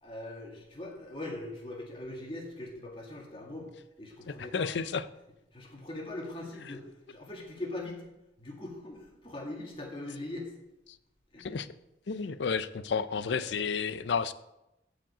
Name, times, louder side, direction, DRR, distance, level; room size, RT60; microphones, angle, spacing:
voice 1, 0.0-4.7 5.5-8.1 8.4-10.5 11.3-11.6 12.2-12.4 13.2-13.7, left 1 dB, 30° left, 0 dB, 2.0 m, -41 dB
voice 2, 4.3-5.0 11.4-11.7 12.1-14.3, left 5 dB, 90° left, 15 dB, 0.5 m, -31 dB
15.0 x 5.1 x 4.9 m, 0.90 s
head